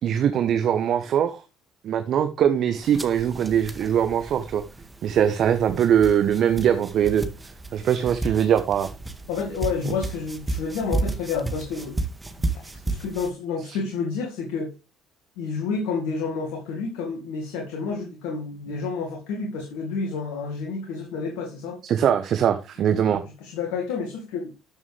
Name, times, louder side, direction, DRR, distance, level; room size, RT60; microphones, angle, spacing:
voice 1, 0.0-1.4 1.8-4.6 5.0-7.2 7.7-8.9 13.7-13.8 21.8-23.2, right 9 dB, 60° right, 1.2 m, -22 dB
sound 1, 2.8-13.3, right 2 dB, 15° right, 2.1 m, -33 dB
voice 2, 9.3-12.0 12.4-14.7 15.4-21.8 23.0-24.5, left 5 dB, 75° left, 2.2 m, -30 dB
13.0 x 7.1 x 3.4 m
hypercardioid pair, 55°, 0 cm